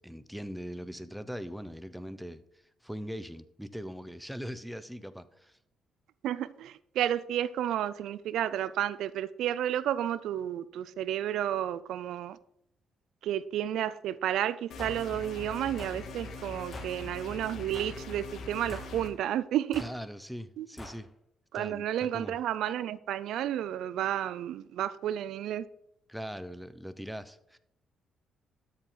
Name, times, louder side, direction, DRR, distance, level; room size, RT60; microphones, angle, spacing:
voice 1, 0.0-5.6 19.8-21.1 21.5-22.4 26.1-27.6, equal, ahead, 0.8 m, -41 dB
voice 2, 6.2-12.4 13.2-19.8 20.6-20.7 21.5-25.7, right 11 dB, 80° right, 0.5 m, -31 dB
sound 1, 14.7-19.1, left 3 dB, 70° left, 1.9 m, -42 dB
sound 2, 14.8-15.0 15.8-16.0 16.7-17.0 17.7-18.0 18.7-19.0 19.7-20.0 20.8-21.0, left 1 dB, 25° left, 2.5 m, -44 dB
12.5 x 7.3 x 3.9 m
cardioid pair, 90°, 0 cm